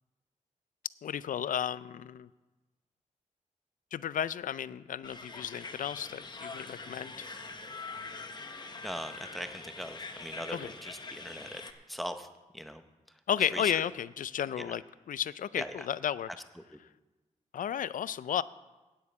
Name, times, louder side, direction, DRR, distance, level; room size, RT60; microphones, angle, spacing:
voice 1, 1.0-2.3 3.9-7.3 10.5-10.7 13.3-14.8 15.1-16.3 17.5-18.4, left 9 dB, 80° left, 17 dB, 0.4 m, -33 dB
sound 1, 5.0-11.7, left 3 dB, 30° left, 0.8 m, -44 dB
voice 2, 8.8-11.6 11.9-12.3 12.5-12.8 13.5-13.8 14.6-14.7 15.6-15.7 16.3-16.8, equal, ahead, 8 dB, 0.7 m, -40 dB
9.4 x 8.2 x 8.6 m, 1.2 s
wide cardioid pair, 165°, 14 cm